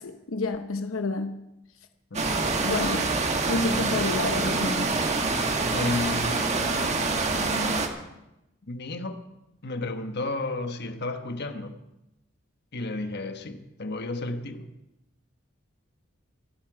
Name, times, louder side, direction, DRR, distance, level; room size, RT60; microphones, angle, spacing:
voice 1, 0.0-1.4 2.6-3.1 3.4-5.0, left 3 dB, 85° left, 0.8 m, -29 dB
voice 2, 2.1-2.5 5.7-8.0 8.7-9.2 9.6-11.8 12.7-14.7, left 2 dB, 55° left, 1.2 m, -33 dB
sound 1, 2.1-7.9, right 3 dB, 35° right, 1.5 m, -26 dB
25.5 x 8.8 x 4.8 m
head